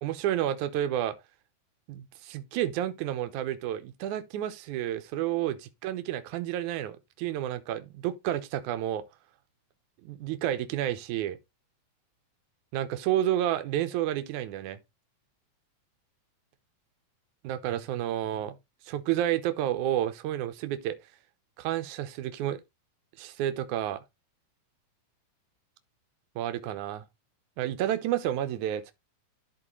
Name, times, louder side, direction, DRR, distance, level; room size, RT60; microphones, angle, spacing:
voice 1, 0.0-1.2 1.9-9.0 10.0-11.4 12.7-14.8 17.4-18.6 18.8-21.0 21.6-22.6 23.2-24.0 26.4-27.0 27.6-28.9, right 12 dB, 70° right, 2.2 m, -30 dB
12.5 x 4.7 x 3.1 m
omnidirectional pair, 3.9 m